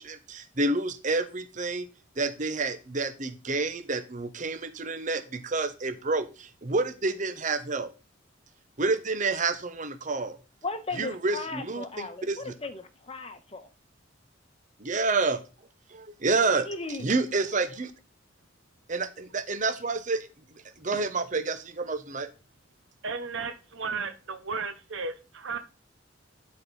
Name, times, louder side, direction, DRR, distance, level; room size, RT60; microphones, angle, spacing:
voice 1, 0.0-1.9 2.2-7.9 8.8-10.4 11.0-12.5 14.8-15.4 15.9-16.6 17.0-17.9 18.9-20.3 20.8-22.3, right 3 dB, 40° right, 0.9 m, -29 dB
voice 2, 10.6-13.7 16.5-17.1, left 3 dB, 30° left, 1.1 m, -36 dB
voice 3, 23.0-25.6, right 4 dB, 75° right, 0.9 m, -34 dB
11.5 x 4.5 x 5.5 m
head